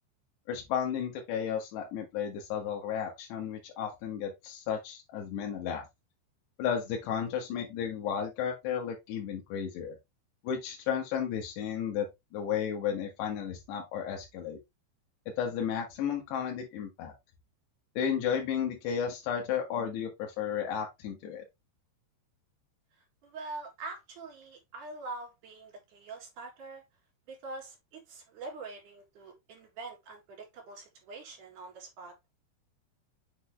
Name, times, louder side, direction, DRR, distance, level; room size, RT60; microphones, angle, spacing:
voice 1, 0.5-5.8 6.6-10.0 10.4-14.6 15.4-17.1 18.0-21.4, left 8 dB, 80° left, 3.6 m, -33 dB
voice 2, 23.2-26.8 27.3-32.1, right 3 dB, 55° right, 3.0 m, -44 dB
7.1 x 4.2 x 3.1 m
omnidirectional pair, 4.9 m